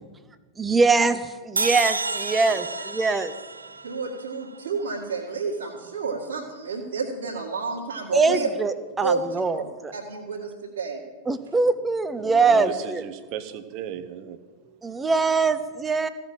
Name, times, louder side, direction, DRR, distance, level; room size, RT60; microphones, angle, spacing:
voice 1, 0.6-3.3 8.1-9.9 11.3-13.0 14.8-16.1, right 4 dB, 15° right, 12 dB, 0.8 m, -23 dB
sound 1, 1.6-4.8, right 3 dB, 80° right, 0.4 m, -30 dB
voice 2, 3.8-8.5 9.0-9.2 9.5-9.7 9.9-11.0, right 5 dB, 60° right, -3 dB, 2.0 m, -30 dB
voice 3, 12.2-14.8, right 9 dB, 45° right, 12 dB, 0.9 m, -36 dB
15.0 x 5.9 x 9.0 m, 1.4 s
figure-of-eight pair, 90°, 0 cm